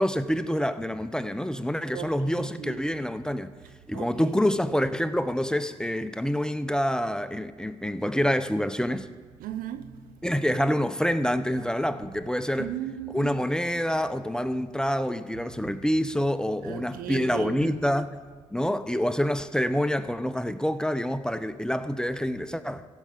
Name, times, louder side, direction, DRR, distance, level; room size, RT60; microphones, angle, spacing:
voice 1, 0.0-3.5 3.9-9.1 10.2-12.7 13.1-18.1 18.5-22.9, equal, 5° left, 0.7 m, -27 dB
voice 2, 1.9-2.8 3.9-4.3 9.4-10.0 12.6-13.4 16.6-17.8, right 10 dB, 75° right, 0.6 m, -36 dB
16.0 x 6.6 x 5.1 m
hypercardioid pair, 40°, 15 cm